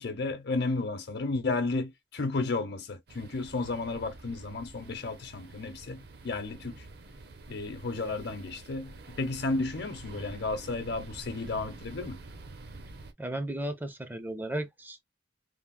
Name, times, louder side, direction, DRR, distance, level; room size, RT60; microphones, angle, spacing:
voice 1, 0.0-6.8 7.5-12.2, left 3 dB, 60° left, 0.7 m, -33 dB
sound 1, 3.1-13.1, right 2 dB, 60° right, 0.6 m, -48 dB
voice 2, 13.2-15.0, right 1 dB, 10° right, 0.4 m, -35 dB
3.3 x 2.0 x 2.4 m
head